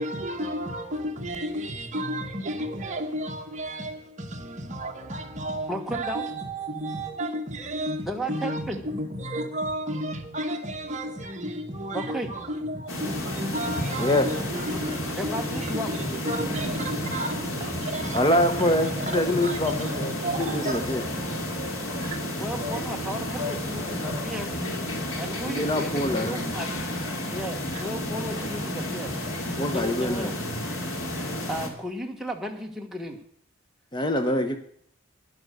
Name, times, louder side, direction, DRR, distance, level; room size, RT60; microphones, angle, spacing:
voice 1, 0.0-18.2 18.6-20.8 22.0-22.3 27.7-27.9, right 1 dB, 35° right, 1.8 m, -32 dB
voice 2, 5.7-6.2 8.1-8.8 11.9-12.3 15.1-15.9 22.4-24.6 25.2-26.7 27.3-29.1 29.6-30.4 31.5-33.2, equal, ahead, 1.4 m, -34 dB
sound 1, 12.9-31.7, left 1 dB, 70° left, 2.6 m, -31 dB
voice 3, 14.0-14.3 18.1-21.0 25.4-26.4 29.6-30.3 33.9-34.6, left 1 dB, 20° left, 0.9 m, -25 dB
11.0 x 11.0 x 6.7 m
head